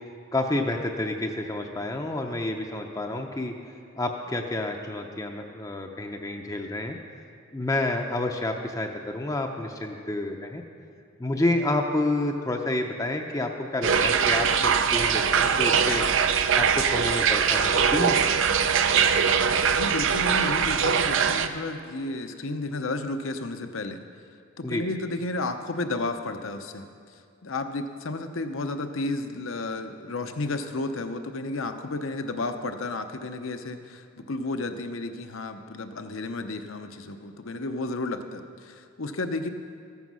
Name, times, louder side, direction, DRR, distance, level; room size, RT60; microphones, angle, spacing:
voice 1, 0.3-3.5 4.0-7.0 7.5-10.6 11.2-16.0 16.5-18.2 24.6-24.8, left 2 dB, 15° left, 2 dB, 0.6 m, -29 dB
sound 1, 13.8-21.5, right 6 dB, 65° right, 0.5 m, -22 dB
voice 2, 19.7-24.0 24.6-26.8 27.4-39.5, left 2 dB, 70° left, 7 dB, 0.8 m, -32 dB
14.0 x 9.4 x 6.2 m, 2.4 s
head